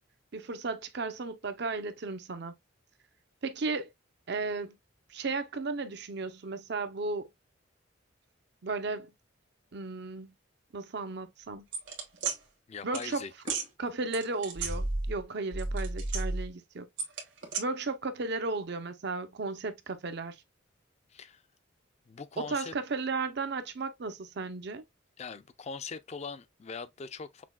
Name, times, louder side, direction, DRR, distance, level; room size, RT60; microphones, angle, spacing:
voice 1, 0.3-2.5 3.4-3.9 4.3-4.8 5.1-7.3 8.6-9.1 9.7-10.3 10.7-11.7 12.8-13.2 13.8-16.9 17.6-20.4 22.4-24.8, right 3 dB, 60° right, 0.6 m, -34 dB
sound 1, 11.7-12.4 12.9-13.1 13.4-13.7 14.1-15.2 15.5-16.5 17.0-17.6, right 3 dB, 75° right, 1.6 m, -32 dB
voice 2, 12.7-13.3 21.1-21.4 22.1-22.7 25.2-27.4, left 5 dB, 35° left, 0.4 m, -41 dB
6.0 x 2.2 x 2.2 m
head